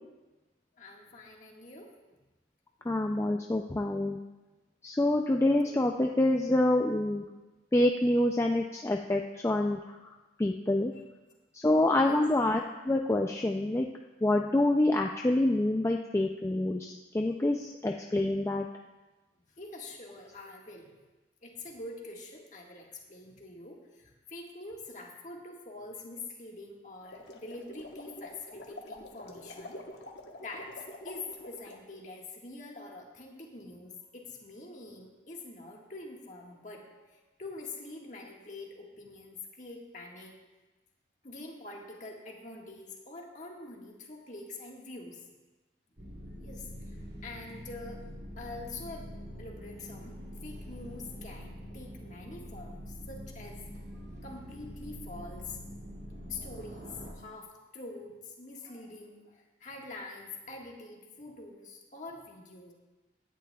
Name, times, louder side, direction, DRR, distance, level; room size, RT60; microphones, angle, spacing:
voice 1, 0.8-1.9 2.8-2.9 5.6-5.8 10.9-11.0 12.0-12.2 19.6-20.9 21.4-30.0 30.4-40.3 41.2-45.2 46.4-48.0 48.4-53.6 54.2-55.6 56.3-62.7, left 2 dB, 40° left, -1 dB, 1.6 m, -45 dB
voice 2, 2.9-4.2 4.8-7.2 7.7-9.8 10.4-10.9 11.5-13.9 14.2-18.7, left 1 dB, 15° left, 2 dB, 0.3 m, -27 dB
sound 1, 26.9-31.8, left 1 dB, 65° left, 1.1 m, -46 dB
sound 2, 46.0-57.1, equal, 55° right, 2.4 m, -45 dB
17.0 x 10.0 x 2.3 m, 1.2 s
head